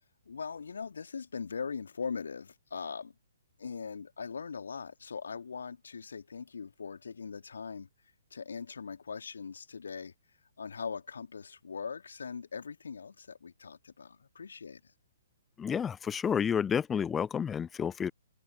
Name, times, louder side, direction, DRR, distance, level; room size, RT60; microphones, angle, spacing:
voice 1, 0.3-3.1 3.6-7.9 8.3-10.1 10.6-14.9, left 5 dB, 60° left, 2.5 m, -40 dB
voice 2, 15.6-18.1, left 7 dB, 10° left, 0.4 m, -30 dB
figure-of-eight pair, 125°, 0 cm